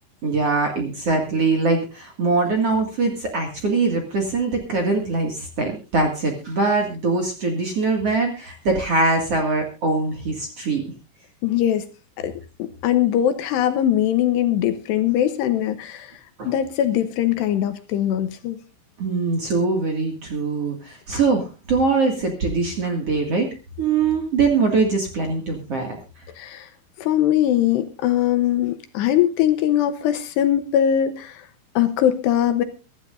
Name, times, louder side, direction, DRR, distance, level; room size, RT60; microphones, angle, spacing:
voice 1, 0.2-10.8 16.4-16.5 19.0-23.5 23.8-26.0, right 3 dB, 45° right, 2 dB, 2.1 m, -22 dB
voice 2, 11.4-11.8 12.2-16.2 16.5-18.6 26.4-26.7 27.0-31.5 31.8-32.6, left 11 dB, 75° left, 10 dB, 2.6 m, -21 dB
23.5 x 13.0 x 2.6 m, 0.32 s
omnidirectional pair, 5.6 m